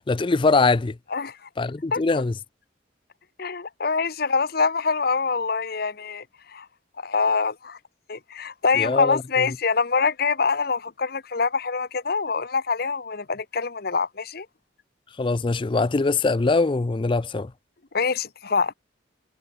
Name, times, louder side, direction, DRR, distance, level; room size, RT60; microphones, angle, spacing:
voice 1, 0.1-1.0 1.6-2.3 8.8-9.5 15.2-17.5, left 3 dB, 25° left, 0.4 m, -22 dB
voice 2, 1.9-2.2 3.4-6.2 6.5-6.6 7.0-7.8 8.1-14.5 17.9-18.7, left 5 dB, 55° left, 1.1 m, -25 dB
head